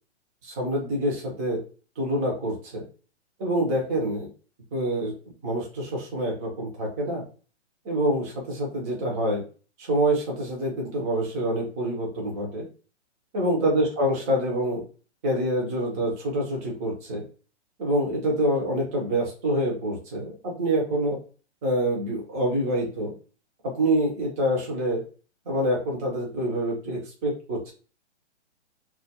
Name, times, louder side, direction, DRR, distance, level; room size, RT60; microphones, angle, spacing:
voice 1, 0.4-1.6 2.0-2.9 3.4-4.3 4.7-5.1 5.4-7.2 7.8-9.4 9.8-12.6 13.3-14.8 15.2-17.2 17.8-21.2 21.6-23.1 23.6-25.0 25.5-27.7, right 1 dB, 15° right, -1 dB, 0.4 m, -26 dB
2.2 x 2.1 x 2.7 m, 0.38 s
hypercardioid pair, 150°, 36 cm